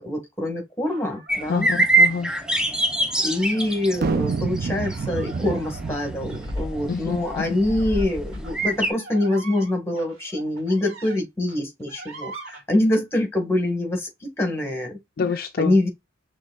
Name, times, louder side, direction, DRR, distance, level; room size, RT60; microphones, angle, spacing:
voice 1, 0.0-1.7 3.2-15.0 15.6-15.9, left 1 dB, 15° left, 1.9 m, -25 dB
sound 1, 0.8-2.5 2.9-3.7 4.1-4.2 4.6-11.2 11.5-12.6, right 3 dB, 80° right, 2.0 m, -43 dB
sound 2, 1.3-8.9, right 2 dB, 5° right, 0.7 m, -25 dB
voice 2, 1.5-2.3 6.9-7.6 8.3-8.4 15.2-15.8, left 5 dB, 50° left, 0.4 m, -27 dB
sound 3, 4.0-7.6, right 4 dB, 50° right, 0.5 m, -29 dB
6.3 x 3.2 x 2.4 m
head